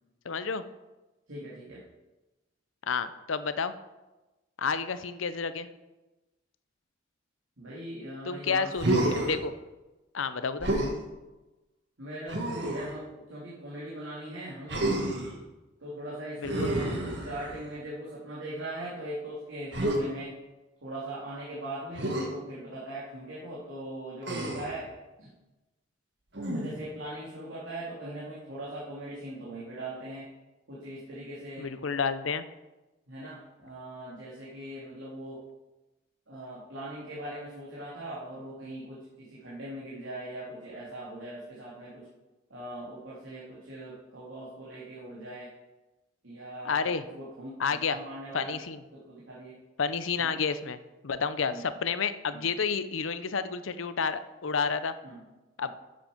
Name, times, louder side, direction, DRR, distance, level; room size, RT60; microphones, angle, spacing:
voice 1, 0.2-0.6 2.9-3.7 4.6-5.7 8.2-9.5 10.1-10.7 16.4-16.7 31.6-32.4 46.6-47.0 47.6-48.0 48.3-48.8 49.8-50.8 51.0-54.9 55.6-55.7, left 5 dB, 85° left, 12 dB, 0.7 m, -30 dB
voice 2, 1.3-1.8 7.6-9.1 10.6-10.9 12.0-15.2 15.8-20.3 20.8-24.9 25.2-25.3 26.5-30.3 30.7-31.7 33.1-35.4 36.3-42.1 42.5-45.5 46.2-47.6 47.9-48.5 48.9-49.6 50.2-50.3 51.5-51.6 52.3-52.4 55.0-55.2 55.6-55.7, right 1 dB, 75° right, -7 dB, 2.9 m, -40 dB
Human voice, 8.8-9.4 10.6-11.0 12.3-13.0 14.7-15.3 16.4-17.7 19.7-20.0 22.0-22.3 24.2-24.8 26.3-26.9, right 1 dB, 60° right, 2.0 m, -29 dB
11.5 x 7.8 x 5.1 m, 1.1 s
head